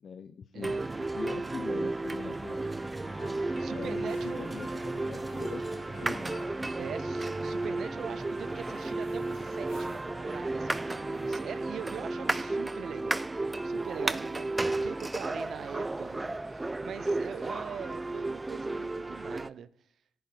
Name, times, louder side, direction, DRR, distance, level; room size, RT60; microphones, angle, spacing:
voice 1, 0.0-2.6 3.7-5.8 6.0-6.3 6.6-6.8, left 6 dB, 50° left, 12 dB, 0.5 m, -43 dB
voice 2, 0.5-1.5 3.2-4.5 6.8-13.3 13.6-19.7, right 8 dB, 60° right, 15 dB, 0.6 m, -42 dB
sound 1, 0.6-19.5, right 2 dB, 15° right, 0.4 m, -33 dB
Wind instrument woodwind instrument, 2.0-6.9, left 2 dB, 25° left, 3.3 m, -52 dB
sound 2, 3.0-13.1, left 4 dB, 85° left, 2.7 m, -54 dB
14.0 x 7.0 x 6.2 m, 0.64 s
cardioid pair, 90°, 0 cm